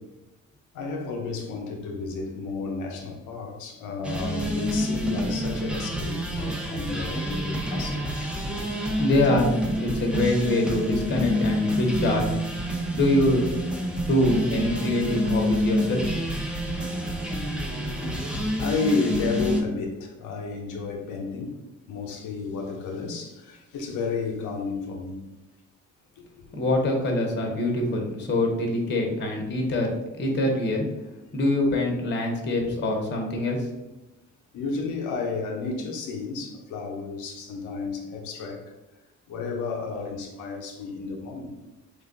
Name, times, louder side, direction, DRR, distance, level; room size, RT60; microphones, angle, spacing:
voice 1, 0.7-8.1 18.4-21.6 21.9-25.2 26.2-26.3 34.5-38.7 39.3-41.6, left 4 dB, 80° left, 0.6 m, -32 dB
sound 1, 4.0-19.6, equal, 5° right, 0.6 m, -28 dB
voice 2, 9.0-12.3 12.9-13.4 14.0-16.0 26.5-30.9 31.3-33.7, left 1 dB, 35° left, 0.8 m, -24 dB
3.2 x 2.2 x 3.7 m
cardioid pair, 90°, 30 cm